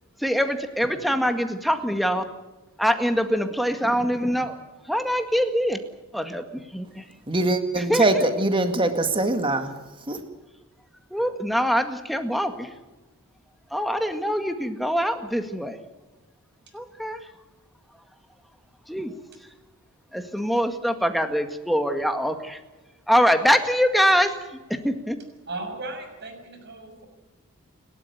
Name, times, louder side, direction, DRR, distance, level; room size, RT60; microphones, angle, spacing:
voice 1, 0.2-2.2 2.8-4.6 4.9-5.8 6.1-7.0 7.9-8.0 11.1-12.7 13.7-15.8 16.7-17.2 18.9-19.1 20.1-22.6 23.1-25.2, equal, ahead, 7 dB, 1.9 m, -24 dB
voice 2, 7.3-10.2, right 2 dB, 25° right, 7 dB, 2.0 m, -23 dB
voice 3, 25.5-27.1, right 2 dB, 50° right, 6 dB, 6.5 m, -36 dB
29.5 x 13.0 x 9.5 m, 1.1 s
head